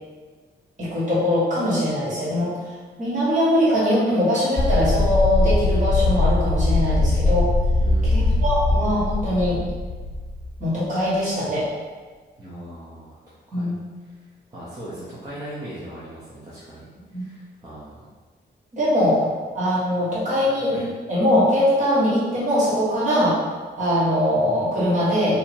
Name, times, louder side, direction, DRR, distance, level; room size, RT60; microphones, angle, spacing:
voice 1, 0.8-2.7 3.0-7.5 8.0-9.6 10.6-11.7 13.5-13.8 17.1-17.2 18.7-19.3 19.5-20.7 21.1-23.4 23.8-25.4, equal, 45° right, -9 dB, 1.5 m, -21 dB
sound 1, 4.6-10.6, left 2 dB, 30° left, 0.4 m, -21 dB
voice 2, 7.8-8.4 12.4-13.2 13.5-13.7 14.5-16.8 17.1-18.0 20.2-20.3 20.7-20.8, right 1 dB, 20° right, -10 dB, 0.7 m, -39 dB
2.9 x 2.7 x 4.3 m, 1.4 s
wide cardioid pair, 175°, 18 cm